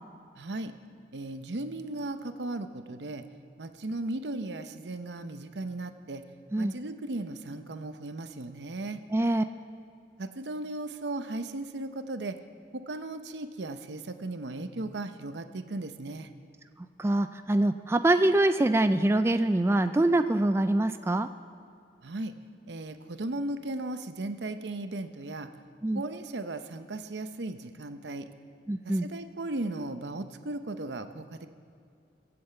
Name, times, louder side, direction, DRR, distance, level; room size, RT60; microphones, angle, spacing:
voice 1, 0.4-0.7 1.1-3.3 3.6-6.2 6.6-9.0 10.2-12.4 12.7-16.3 22.0-22.3 22.7-25.5 25.9-28.3 28.8-31.5, right 2 dB, 85° right, 9 dB, 0.8 m, -36 dB
voice 2, 9.1-9.4 17.0-21.3 25.8-26.0 28.7-29.1, right 1 dB, 15° right, 9 dB, 0.3 m, -24 dB
17.5 x 7.9 x 7.9 m, 2.5 s
head